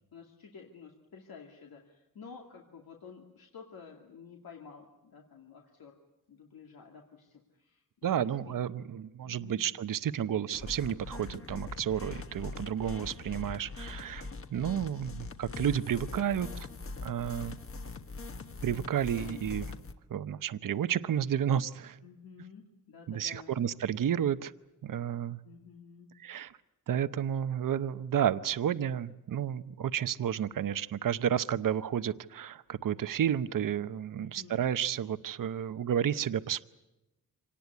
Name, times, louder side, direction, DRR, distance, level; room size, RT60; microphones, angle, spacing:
voice 1, 0.1-6.0 6.3-8.3 9.2-9.6 10.1-10.4 14.8-15.2 16.3-16.8 19.1-19.4 22.0-23.5 25.4-26.1 34.1-34.6, left 6 dB, 85° left, 1 dB, 2.5 m, -51 dB
voice 2, 8.0-16.5 17.0-17.6 18.6-19.7 20.1-22.0 23.1-24.5 24.8-25.4 26.2-26.5 26.9-36.6, right 9 dB, 65° right, 14 dB, 0.8 m, -31 dB
sound 1, 10.5-19.9, left 3 dB, 40° left, 1.4 m, -42 dB
26.0 x 19.0 x 9.6 m, 0.98 s
wide cardioid pair, 145°, 36 cm